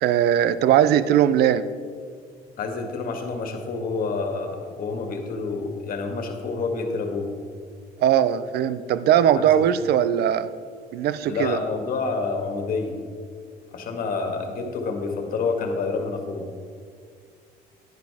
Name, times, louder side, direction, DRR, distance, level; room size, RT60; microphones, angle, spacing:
voice 1, 0.0-1.7 8.0-10.5 10.9-11.6, right 10 dB, 70° right, 14 dB, 0.5 m, -20 dB
voice 2, 2.6-7.3 9.4-9.6 11.3-13.0 13.7-16.5, left 4 dB, 55° left, 4 dB, 1.8 m, -28 dB
10.5 x 10.5 x 3.5 m, 2.1 s
cardioid pair, 110°, 17 cm